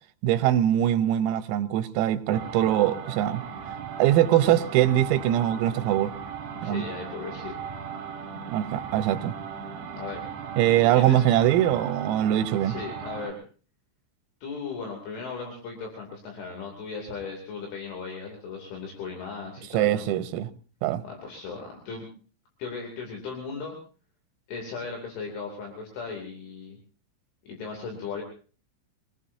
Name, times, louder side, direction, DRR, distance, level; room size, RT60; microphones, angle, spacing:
voice 1, 0.2-3.4 4.0-6.1 6.6-6.9 8.5-9.4 10.6-12.8 19.7-20.5 20.8-21.0, right 12 dB, 90° right, 3.7 m, -22 dB
sound 1, 2.3-13.3, right 6 dB, 55° right, 3.9 m, -38 dB
voice 2, 6.5-7.6 10.0-10.2 10.6-11.2 12.6-13.4 14.4-20.1 21.0-22.1 22.6-23.8 24.5-26.8 27.4-28.2, left 5 dB, 65° left, 5.1 m, -37 dB
25.0 x 19.5 x 2.7 m
omnidirectional pair, 5.9 m